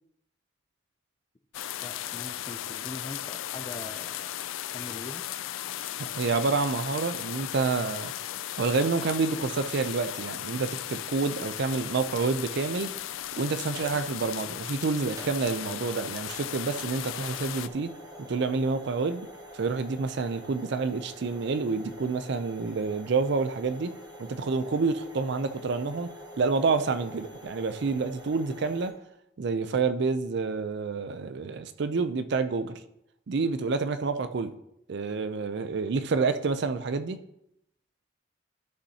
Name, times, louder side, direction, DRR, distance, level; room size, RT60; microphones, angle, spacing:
sound 1, 1.5-17.7, left 12 dB, 85° left, 0.4 m, -36 dB
voice 1, 1.8-4.3 4.7-5.2, left 2 dB, 25° left, 9 dB, 0.4 m, -42 dB
voice 2, 6.2-8.1 8.6-12.9 13.4-17.9 18.3-19.3 19.5-23.9 24.2-26.1 26.4-28.9 29.4-32.8 33.3-34.5 34.9-37.2, right 4 dB, 60° right, 10 dB, 0.5 m, -28 dB
sound 2, 12.8-28.9, equal, 20° right, 1.1 m, -47 dB
11.5 x 5.3 x 2.8 m, 0.80 s
head